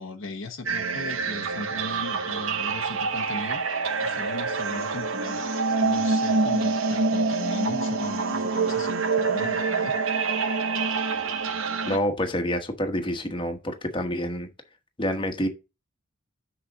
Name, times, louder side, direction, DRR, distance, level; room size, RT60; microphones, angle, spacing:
voice 1, 0.0-5.5 5.8-10.0, left 3 dB, 65° left, 0.9 m, -38 dB
sound 1, 0.7-12.0, right 4 dB, 75° right, 1.2 m, -26 dB
voice 2, 11.9-14.5 15.0-15.5, equal, 25° left, 1.2 m, -27 dB
6.3 x 4.1 x 6.1 m
head